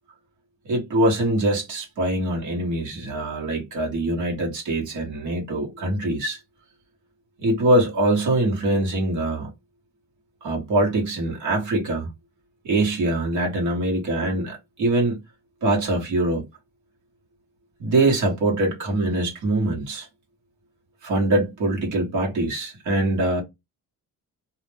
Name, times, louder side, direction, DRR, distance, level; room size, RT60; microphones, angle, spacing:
voice 1, 0.6-6.4 7.4-9.5 10.4-12.1 12.6-15.2 15.6-16.4 17.8-20.1 21.0-23.4, right 1 dB, 60° right, 1.1 m, -23 dB
2.4 x 2.0 x 3.2 m
cardioid pair, 140°, 33 cm